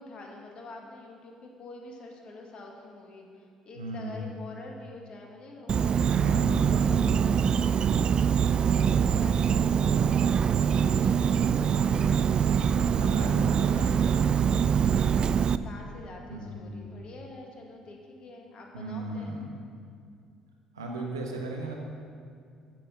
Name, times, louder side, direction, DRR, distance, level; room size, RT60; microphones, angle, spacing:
voice 1, 0.0-12.5 13.2-14.5 15.3-19.4, left 2 dB, 50° left, 0 dB, 1.9 m, -46 dB
voice 2, 3.8-4.3 6.1-6.9 12.9-14.0 16.3-16.9 18.7-19.5 20.7-21.7, right 1 dB, 90° right, 0 dB, 1.1 m, -36 dB
Insect, 5.7-15.6, right 7 dB, 45° right, 0.3 m, -24 dB
9.0 x 7.8 x 6.2 m, 2.3 s
hypercardioid pair, 50°, 2 cm